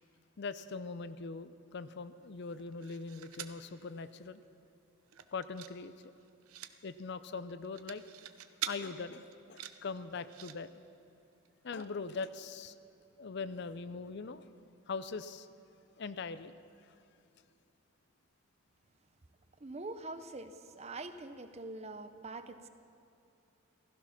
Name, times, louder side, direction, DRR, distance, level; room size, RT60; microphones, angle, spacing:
voice 1, 0.4-4.4 5.3-6.1 6.8-8.0 8.7-10.7 11.6-12.7 13.2-14.5 14.9-15.5 16.0-16.5, left 4 dB, 50° left, 13 dB, 0.5 m, -41 dB
sound 1, 2.5-3.6 4.1-4.2 4.4-4.7 5.0-5.8 6.0-6.7 7.5-8.8 9.3-10.6 11.4-11.5 11.8-11.9, right 11 dB, 75° right, 0.7 m, -44 dB
voice 2, 19.6-22.7, right 2 dB, 30° right, 10 dB, 0.6 m, -44 dB
16.0 x 15.0 x 5.9 m, 2.8 s
head